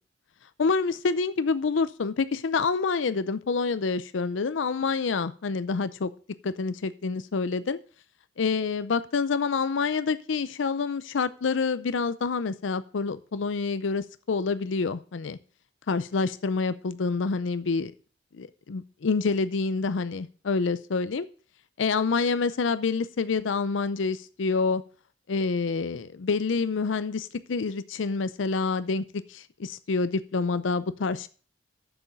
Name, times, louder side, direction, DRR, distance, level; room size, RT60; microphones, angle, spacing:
voice 1, 0.6-6.1 6.4-7.8 8.4-15.4 15.9-17.9 18.3-21.3 21.8-24.8 25.3-29.0 29.3-31.3, left 4 dB, 80° left, 14 dB, 0.5 m, -27 dB
7.1 x 7.1 x 6.6 m, 0.40 s
head